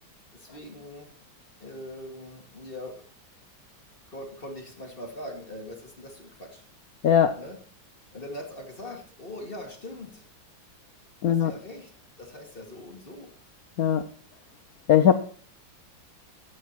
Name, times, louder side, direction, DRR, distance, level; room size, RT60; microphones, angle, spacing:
voice 1, 0.3-1.1 1.6-3.0 4.1-6.6 7.3-7.6 8.1-10.3 11.3-11.9 12.2-13.3, left 1 dB, 30° left, 1 dB, 2.4 m, -41 dB
voice 2, 7.0-7.4 11.2-11.5 13.8-14.1 14.9-15.1, left 9 dB, 60° left, 9 dB, 1.0 m, -19 dB
14.0 x 9.1 x 4.5 m, 0.43 s
omnidirectional pair, 2.2 m